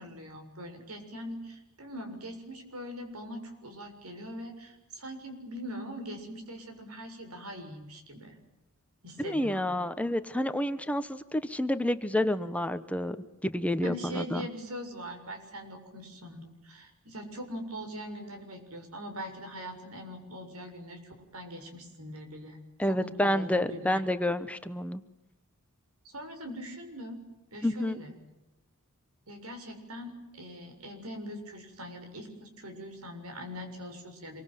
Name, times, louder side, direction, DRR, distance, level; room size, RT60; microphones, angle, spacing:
voice 1, 0.0-8.3 9.0-9.8 13.8-24.0 26.0-27.2 27.5-28.1 29.3-34.4, equal, 80° right, 5 dB, 6.9 m, -42 dB
voice 2, 9.2-13.2 13.4-14.4 22.8-25.0 27.6-28.0, left 1 dB, 5° left, 10 dB, 1.1 m, -29 dB
27.0 x 24.0 x 9.3 m, 0.95 s
head